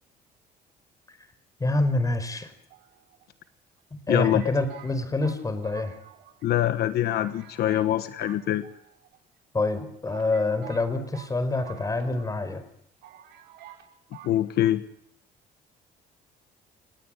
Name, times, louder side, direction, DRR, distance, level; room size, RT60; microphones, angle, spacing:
voice 1, 1.6-2.5 4.1-5.9 9.5-12.6, left 2 dB, 20° left, 12 dB, 4.8 m, -26 dB
sound 1, 2.7-3.5 4.1-6.4 6.7-6.8 7.1-7.9 8.2-9.2 9.7-9.8 10.1-12.4 12.6-12.7 13.0-13.8 14.1-14.3, right 11 dB, 80° right, 5.2 m, -48 dB
voice 2, 4.1-4.5 6.4-8.7 14.2-14.8, left 12 dB, 70° left, 11 dB, 1.3 m, -24 dB
29.5 x 18.0 x 8.9 m, 0.75 s
cardioid pair, 110°, 17 cm